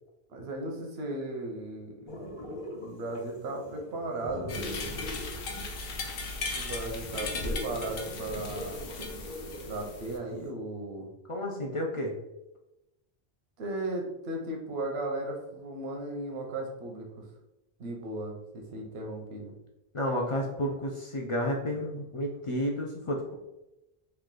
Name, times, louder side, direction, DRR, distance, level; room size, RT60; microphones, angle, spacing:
voice 1, 0.3-2.0 2.8-4.7 6.5-8.8 9.6-11.1 13.6-17.3 17.8-19.5, right 2 dB, 85° right, 1 dB, 0.9 m, -36 dB
sound 1, 2.1-10.5, left 1 dB, 30° left, 0.7 m, -42 dB
sound 2, 4.5-10.2, left 3 dB, 70° left, 0.8 m, -37 dB
voice 2, 11.3-12.1 19.9-23.3, equal, 55° left, 0 dB, 0.3 m, -31 dB
3.2 x 2.3 x 3.6 m, 0.95 s
omnidirectional pair, 1.0 m